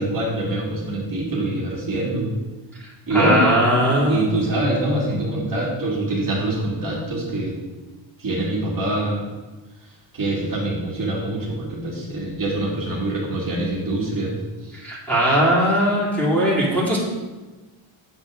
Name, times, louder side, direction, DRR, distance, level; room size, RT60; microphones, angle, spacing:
voice 1, 0.0-2.3 3.1-3.4 4.0-7.6 8.2-9.2 10.1-14.4, right 2 dB, 45° right, -5 dB, 1.9 m, -24 dB
voice 2, 2.8-4.4 14.7-17.0, equal, 5° left, -7 dB, 2.2 m, -20 dB
8.1 x 3.6 x 6.1 m, 1.2 s
wide cardioid pair, 150°, 48 cm